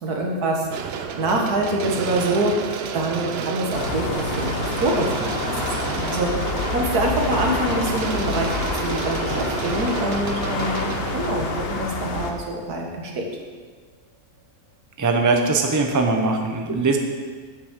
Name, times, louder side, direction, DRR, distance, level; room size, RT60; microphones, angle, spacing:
voice 1, 0.0-13.3, right 1 dB, 85° right, 1 dB, 1.9 m, -25 dB
sound 1, 0.7-12.8 13.4-13.5 15.7-16.0, right 7 dB, 60° right, 0.7 m, -31 dB
sound 2, 3.7-12.3, left 4 dB, 50° left, 0.9 m, -28 dB
voice 2, 15.0-17.0, right 3 dB, 15° right, 3 dB, 0.6 m, -20 dB
8.2 x 6.2 x 7.3 m, 1.5 s
omnidirectional pair, 1.6 m